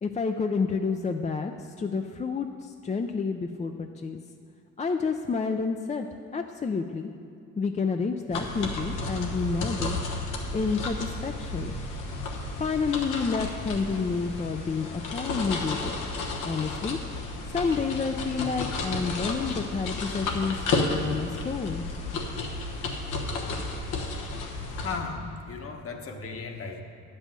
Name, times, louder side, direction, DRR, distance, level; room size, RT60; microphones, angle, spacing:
voice 1, 0.0-4.2 4.8-6.1 6.3-7.1 7.6-10.0 10.5-11.7 12.3-15.9 16.4-17.0 17.5-21.8, left 5 dB, 25° left, 5 dB, 0.4 m, -29 dB
sound 1, 8.3-25.0, left 3 dB, 90° left, 1.2 m, -32 dB
voice 2, 24.7-26.8, left 4 dB, 45° left, 3 dB, 1.2 m, -36 dB
9.8 x 5.5 x 7.4 m, 2.5 s
cardioid pair, 90°, 30 cm